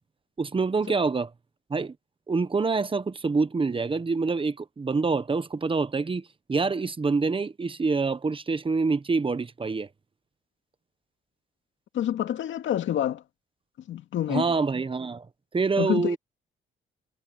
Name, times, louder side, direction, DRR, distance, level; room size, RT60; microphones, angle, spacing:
voice 1, 0.4-1.3 1.7-1.9 2.3-9.9 14.3-15.3 15.5-16.2, right 4 dB, 25° right, 1.2 m, -26 dB
voice 2, 11.9-13.2 13.9-14.5 15.8-16.2, left 11 dB, 75° left, 2.2 m, -27 dB
cardioid pair, 90°, 20 cm